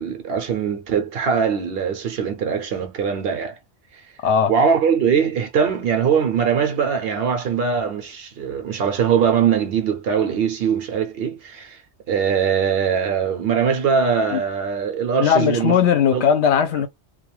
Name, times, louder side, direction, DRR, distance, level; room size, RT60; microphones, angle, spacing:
voice 1, 0.0-3.6 4.5-11.8 12.1-15.8 16.1-16.2, right 7 dB, 60° right, 0.8 m, -21 dB
voice 2, 4.2-4.5 14.3-14.4 15.2-16.9, left 7 dB, 75° left, 0.8 m, -18 dB
2.3 x 2.3 x 3.0 m
omnidirectional pair, 1.2 m